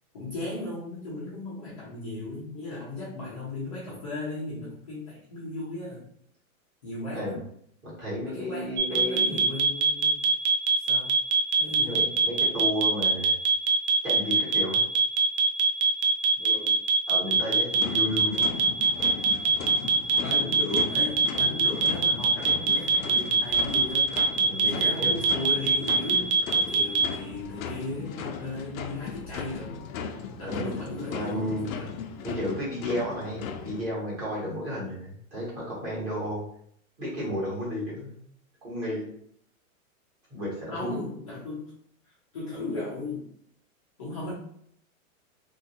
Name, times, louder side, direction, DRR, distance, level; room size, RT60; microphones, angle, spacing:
voice 1, 0.1-6.1 6.8-7.5 8.3-10.2 10.8-11.2 11.6-12.0 16.4-16.8 20.2-24.1 24.6-29.9 30.4-31.9 40.7-41.8 42.1-43.3 44.0-44.3, left 2 dB, 25° left, -9 dB, 0.5 m, -36 dB
voice 2, 8.0-9.4 11.8-13.3 14.0-14.8 17.1-18.4 24.5-25.1 30.4-30.8 31.1-31.7 32.2-36.4 37.0-38.2 38.6-39.1 40.3-41.0, equal, 20° right, -7 dB, 1.2 m, -32 dB
sound 1, 8.8-27.0, right 4 dB, 55° right, 0.5 m, -22 dB
sound 2, 17.7-33.9, left 6 dB, 75° left, 0.6 m, -38 dB
3.0 x 2.6 x 2.7 m, 0.67 s
supercardioid pair, 175°, 42 cm